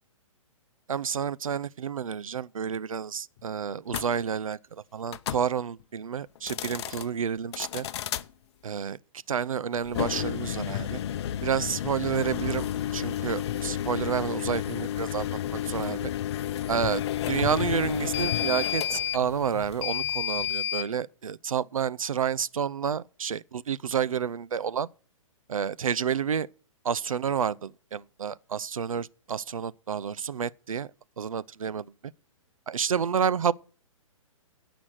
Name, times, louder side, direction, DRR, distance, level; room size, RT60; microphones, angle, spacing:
voice 1, 0.9-4.6 4.9-7.9 8.6-9.0 9.3-11.0 11.4-16.1 16.7-24.9 25.5-26.5 26.8-30.9 31.2-32.1 32.7-33.5, right 7 dB, 80° right, 0.6 m, -30 dB
sound 1, 3.9-4.1 5.1-5.4 6.3-7.0 7.5-8.2 9.8-20.9, left 11 dB, 50° left, 0.7 m, -31 dB
16.5 x 6.1 x 6.4 m
hypercardioid pair, 130°, 17 cm